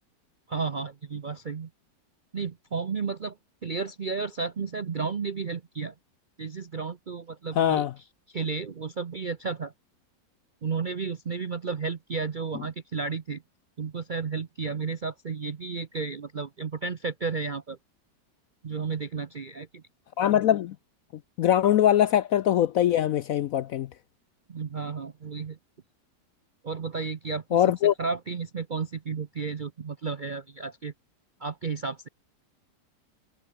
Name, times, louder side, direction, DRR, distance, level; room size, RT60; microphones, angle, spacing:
voice 1, 0.5-1.7 2.3-3.4 3.6-5.9 6.4-7.9 8.3-9.7 10.6-13.4 13.8-17.8 18.6-19.8 24.5-25.6 26.6-27.6 28.0-30.9 31.4-32.1, right 5 dB, 50° right, 0.5 m, -32 dB
voice 2, 7.6-7.9 20.2-20.7 21.4-23.9 27.5-27.9, left 11 dB, 70° left, 0.8 m, -22 dB
omnidirectional pair, 1.9 m